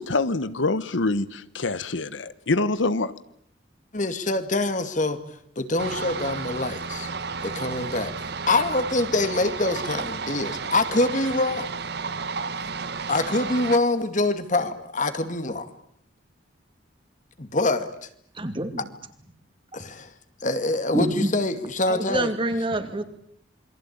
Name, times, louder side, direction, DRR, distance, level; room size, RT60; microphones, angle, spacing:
voice 1, 0.0-3.1, left 3 dB, 80° left, 15 dB, 1.2 m, -25 dB
voice 2, 3.9-5.2 5.6-7.1 7.4-11.7 13.1-15.7 17.4-17.9 19.7-20.1 20.4-22.3, left 2 dB, 40° left, 10 dB, 2.2 m, -25 dB
sound 1, 5.8-13.8, right 5 dB, 60° right, 1.2 m, -32 dB
voice 3, 18.3-18.8 20.9-21.3 21.9-23.0, right 1 dB, 25° right, 8 dB, 2.6 m, -26 dB
28.0 x 23.0 x 8.8 m, 0.68 s
head